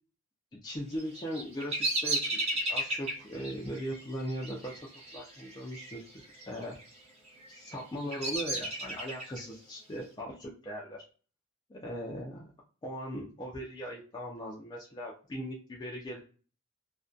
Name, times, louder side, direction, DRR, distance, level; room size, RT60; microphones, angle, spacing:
voice 1, 0.5-4.7 5.1-7.0 7.5-11.0 11.7-12.5 12.8-16.2, equal, 20° left, -4 dB, 0.4 m, -39 dB
Bird vocalization bird call bird song, 0.9-6.0 6.2-6.8 7.4-9.4, right 1 dB, 30° right, 0.6 m, -34 dB
2.5 x 2.2 x 2.3 m, 0.37 s
head